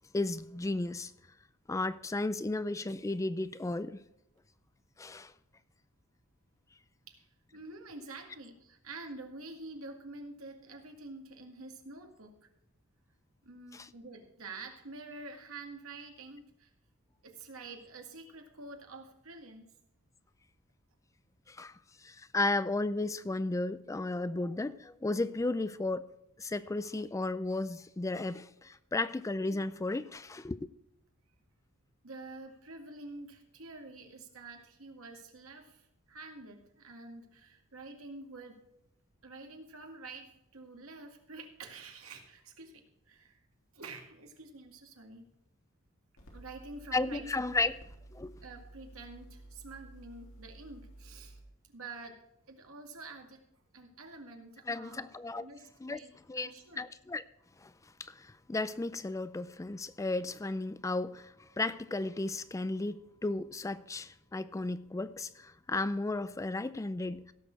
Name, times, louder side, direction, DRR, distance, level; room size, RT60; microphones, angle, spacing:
voice 1, 0.1-1.1 1.7-4.0 5.0-5.3 13.7-13.9 21.5-21.7 22.0-26.1 26.4-30.6 46.9-47.7 48.1-48.3 54.7-55.5 55.8-56.0 56.3-56.5 56.8-57.2 57.6-57.7 58.0-67.3, left 2 dB, 15° left, 0.4 m, -34 dB
voice 2, 7.5-12.5 13.4-16.7 17.2-19.7 32.0-38.6 39.2-43.4 43.7-45.3 46.3-47.6 48.4-51.4 51.7-53.4 53.7-55.1 55.4-56.1 56.4-56.9, right 3 dB, 80° right, 2.2 m, -48 dB
sound 1, 46.2-51.4, right 1 dB, 70° left, 3.4 m, -52 dB
17.0 x 6.5 x 4.7 m
head